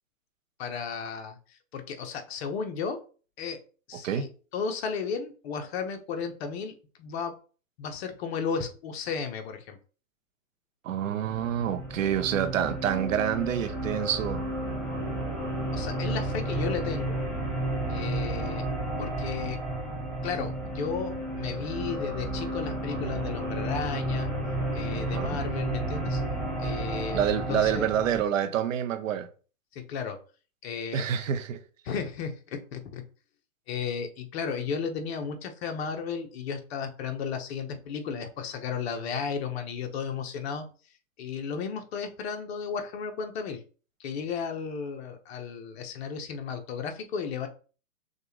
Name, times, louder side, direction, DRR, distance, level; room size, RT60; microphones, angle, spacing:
voice 1, 0.6-1.4 1.7-3.0 3.4-3.6 3.9-7.4 7.8-9.8 15.7-17.2 17.9-18.7 19.0-19.6 20.2-24.3 24.7-26.2 26.6-27.9 29.7-30.2 30.6-31.0 31.8-33.0 33.7-40.7 41.2-43.6 44.0-47.5, left 6 dB, 50° left, 1.0 m, -34 dB
voice 2, 10.8-14.4 24.9-25.4 27.1-29.3 30.9-31.6, right 9 dB, 65° right, 0.8 m, -27 dB
sound 1, 11.2-28.2, right 1 dB, ahead, 1.4 m, -32 dB
6.3 x 2.5 x 3.2 m
hypercardioid pair, 140°, 41 cm